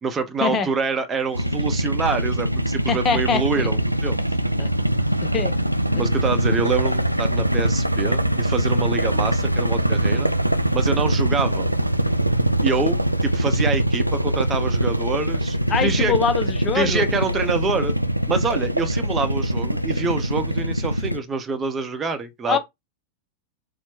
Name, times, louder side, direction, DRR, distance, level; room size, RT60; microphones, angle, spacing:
voice 1, 0.0-4.2 6.0-10.3 10.7-11.7 12.6-16.1 16.7-17.9 18.3-22.6, right 4 dB, 20° right, 0.7 m, -26 dB
sound 1, 1.3-21.2, right 1 dB, 90° right, 0.3 m, -22 dB
voice 2, 2.9-3.7 4.6-4.7 5.3-5.5 5.9-6.0 15.7-17.0 22.5-22.6, left 6 dB, 25° left, 0.6 m, -23 dB
4.2 x 2.1 x 4.4 m
figure-of-eight pair, 90°, 0 cm